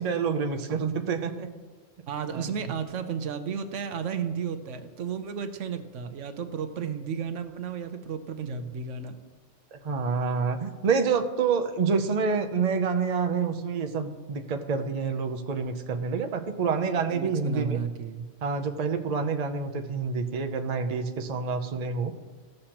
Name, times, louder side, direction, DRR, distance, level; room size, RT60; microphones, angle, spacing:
voice 1, 0.0-1.5 2.3-2.7 9.7-17.8 18.4-22.1, right 5 dB, 40° right, 5 dB, 0.6 m, -28 dB
voice 2, 2.1-9.2 17.1-18.3, right 6 dB, 85° right, 9 dB, 1.1 m, -33 dB
16.0 x 6.5 x 2.9 m, 1.3 s
omnidirectional pair, 1.2 m